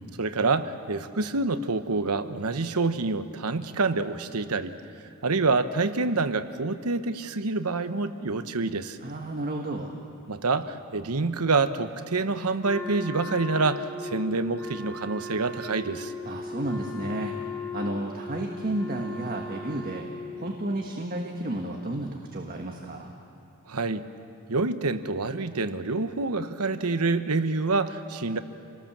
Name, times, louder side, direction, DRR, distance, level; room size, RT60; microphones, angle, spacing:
voice 1, 0.2-4.7 5.2-9.0 10.3-16.1 23.7-24.1 24.5-28.4, right 3 dB, 85° right, 10 dB, 1.0 m, -27 dB
voice 2, 9.0-10.0 16.2-17.3 17.7-20.1 20.4-23.1, right 1 dB, 40° right, 1 dB, 1.5 m, -32 dB
Wind instrument woodwind instrument, 12.6-20.6, left 3 dB, 5° left, 1.7 m, -37 dB
28.0 x 19.0 x 7.4 m, 2.7 s
head